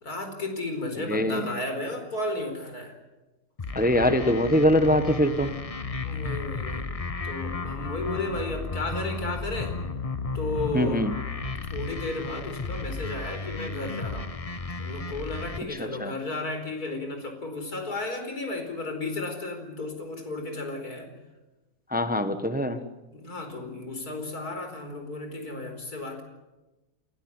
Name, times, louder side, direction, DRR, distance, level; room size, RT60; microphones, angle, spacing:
voice 1, 0.0-3.0 6.0-6.9 7.2-9.8 10.3-11.1 11.7-14.3 14.7-21.1 22.7-22.8 23.1-26.2, left 2 dB, 85° left, 5 dB, 5.2 m, -33 dB
voice 2, 1.0-1.5 3.7-5.5 10.7-11.1 15.8-16.1 21.9-22.8, equal, 5° right, 10 dB, 1.1 m, -23 dB
sound 1, 3.6-15.6, left 3 dB, 25° left, 1.0 m, -33 dB
29.0 x 16.0 x 9.8 m, 1.1 s
omnidirectional pair, 1.6 m